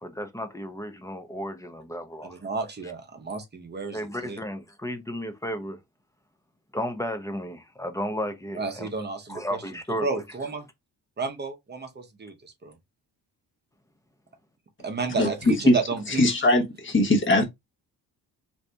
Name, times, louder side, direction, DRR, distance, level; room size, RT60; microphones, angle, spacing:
voice 1, 0.0-2.4 3.9-5.8 6.7-8.9 9.3-10.2, equal, 10° left, 0.4 m, -33 dB
voice 2, 2.2-4.4 8.6-9.6 10.0-10.7 11.2-12.8 14.8-16.3, right 4 dB, 25° right, 0.7 m, -32 dB
voice 3, 16.1-17.4, left 1 dB, 30° left, 1.2 m, -20 dB
2.6 x 2.6 x 3.3 m
wide cardioid pair, 160°, 38 cm